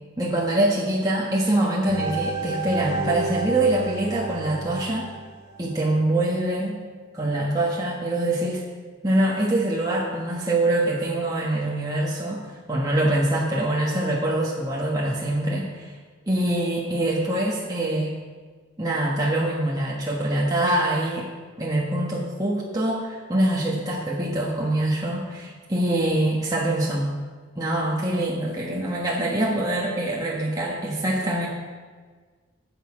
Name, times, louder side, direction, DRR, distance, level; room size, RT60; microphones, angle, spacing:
voice 1, 0.2-5.1 5.6-6.8 7.1-8.6 9.0-12.4 12.7-15.9 16.3-18.1 18.8-21.3 21.6-27.1 27.5-31.5, right 1 dB, 20° right, -4 dB, 1.4 m, -24 dB
sound 1, 1.9-5.9, right 3 dB, 60° right, 2.0 m, -31 dB
16.0 x 6.7 x 5.0 m, 1.5 s
head